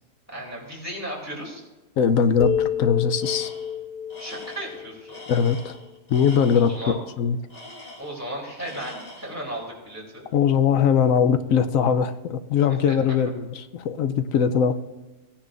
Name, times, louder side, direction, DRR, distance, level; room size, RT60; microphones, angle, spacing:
voice 1, 0.3-1.6 4.2-5.2 6.5-7.0 8.0-10.3 12.7-13.0, right 1 dB, 10° right, -4 dB, 3.1 m, -35 dB
voice 2, 2.0-3.5 5.3-5.8 6.1-6.7 7.2-7.4 10.3-13.5 13.7-14.8, left 7 dB, 80° left, 9 dB, 1.0 m, -21 dB
sound 1, 2.4-5.9, left 8 dB, 60° left, 0.5 m, -29 dB
Tools, 3.2-3.8 4.1-6.8 7.5-8.3 8.6-9.4, left 2 dB, 30° left, 1.7 m, -43 dB
17.0 x 10.0 x 2.5 m, 1.2 s
omnidirectional pair, 1.4 m